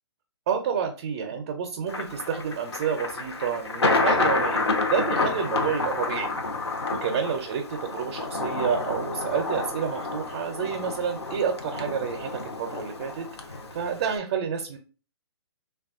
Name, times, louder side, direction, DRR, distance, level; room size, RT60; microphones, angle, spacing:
voice 1, 0.5-13.3 13.7-14.8, right 7 dB, 35° right, 3 dB, 0.5 m, -29 dB
Thunder, 1.9-14.2, left 3 dB, 80° left, 0.6 m, -29 dB
3.3 x 2.3 x 2.4 m, 0.36 s
figure-of-eight pair, 130°, 14 cm